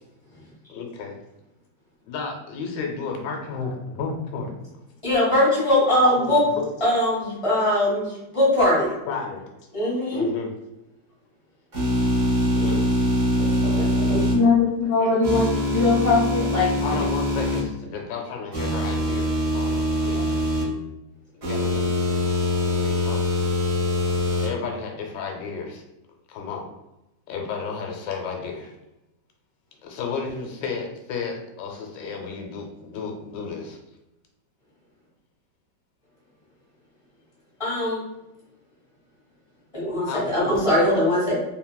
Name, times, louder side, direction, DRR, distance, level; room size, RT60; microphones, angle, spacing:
voice 1, 0.7-1.2 2.1-4.5 6.0-6.6 9.1-9.5 10.1-10.5 12.6-12.9 16.8-20.3 21.3-22.4 22.7-23.2 24.4-25.8 26.3-26.6 27.3-28.8 29.8-33.8 40.1-40.5, left 5 dB, 80° left, 1 dB, 1.2 m, -32 dB
voice 2, 5.0-6.4 6.8-8.1 8.3-8.9 9.7-10.3 13.4-14.2 37.6-38.0 39.7-41.4, left 1 dB, 25° left, -7 dB, 0.8 m, -21 dB
sound 1, 11.7-14.3 15.2-17.6 18.5-20.6 21.4-24.5, left 1 dB, 45° right, 1.2 m, -23 dB
voice 3, 14.1-17.1 20.1-20.2, left 4 dB, 55° left, -6 dB, 0.9 m, -21 dB
3.0 x 2.8 x 2.2 m, 0.92 s
omnidirectional pair, 2.0 m